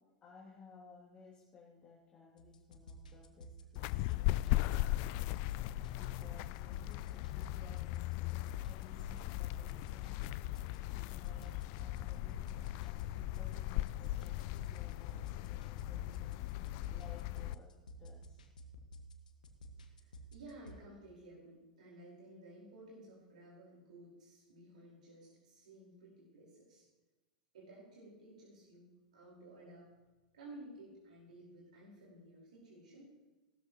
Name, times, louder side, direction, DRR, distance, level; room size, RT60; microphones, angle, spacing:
voice 1, 0.2-10.2 10.9-11.5 11.8-18.4, left 4 dB, 25° left, -4 dB, 2.9 m, -58 dB
sound 1, 2.4-20.8, right 1 dB, 70° left, 1.4 m, -54 dB
sound 2, 3.8-17.5, left 17 dB, 45° left, 0.3 m, -38 dB
voice 2, 19.9-26.9 27.5-28.9 29.1-29.9 30.3-33.1, right 1 dB, 65° right, -4 dB, 4.7 m, -55 dB
17.5 x 13.0 x 3.1 m, 1.2 s
figure-of-eight pair, 90°, 4 cm